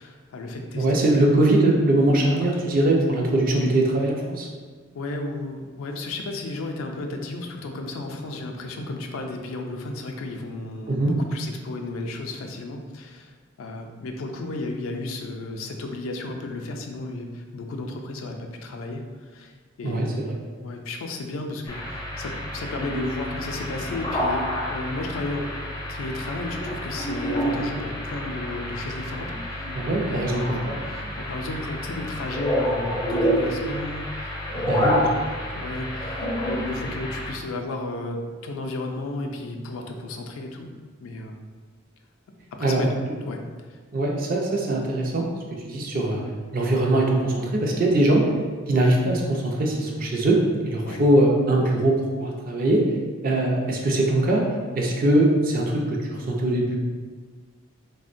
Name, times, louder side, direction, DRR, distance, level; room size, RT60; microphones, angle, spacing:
voice 1, 0.0-1.2 2.5-2.8 4.9-19.5 19.8-20.3 20.6-25.4 25.9-29.7 30.0-30.3 30.8-34.9 35.5-40.7 41.0-41.5 42.5-42.9 43.2-43.4 43.7-43.8 50.8-51.0 53.5-53.7, left 2 dB, 85° left, 3 dB, 0.4 m, -33 dB
voice 2, 0.8-4.5 10.9-11.1 19.8-20.3 29.7-30.8 34.7-35.0 42.6-43.1 43.9-45.3 45.6-46.2 46.5-48.2 48.7-52.8 53.2-54.5 54.7-56.8, right 1 dB, 45° right, 0 dB, 0.4 m, -21 dB
sound 1, 21.7-37.3, equal, 20° left, 0.4 m, -29 dB
3.5 x 2.1 x 2.5 m, 1.5 s
head